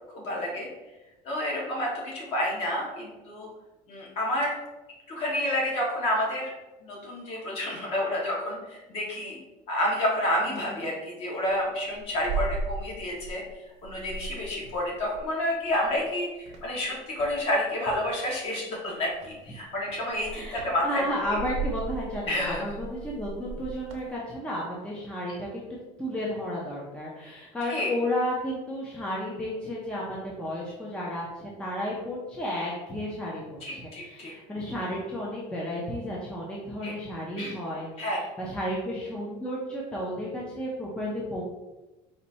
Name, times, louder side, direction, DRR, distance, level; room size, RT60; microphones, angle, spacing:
voice 1, 0.1-0.7 1.2-3.5 3.9-4.6 5.1-6.5 6.8-9.4 9.7-13.4 13.8-21.4 22.3-22.6 25.3-25.4 27.7-27.9 33.6-34.3 36.8-36.9 37.4-37.6 38.0-38.2, left 1 dB, 45° left, -3 dB, 1.4 m, -29 dB
sound 1, 11.5-13.5 13.8-16.1 16.5-18.0 19.1-19.5 19.9-24.1, right 4 dB, 50° right, 0.7 m, -37 dB
voice 2, 20.3-25.6 26.0-37.9 38.4-41.4, equal, 5° left, -5 dB, 0.5 m, -33 dB
4.2 x 2.6 x 4.1 m, 1.1 s
cardioid pair, 175°, 14 cm